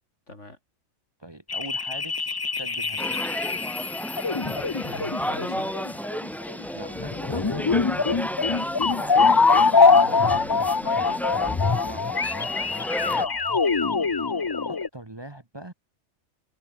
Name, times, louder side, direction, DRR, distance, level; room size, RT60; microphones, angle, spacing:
voice 1, 0.3-0.6 4.8-5.8 9.8-11.2 13.1-13.3, left 2 dB, 70° left, 5.7 m, -42 dB
voice 2, 1.2-3.3 6.7-8.2 11.9-12.2 14.7-15.7, right 1 dB, 20° right, 1.2 m, -42 dB
sound 1, 1.5-14.9, left 4 dB, 30° left, 0.4 m, -23 dB
sound 2, 3.0-13.3, equal, ahead, 1.4 m, -33 dB
omnidirectional pair, 1.3 m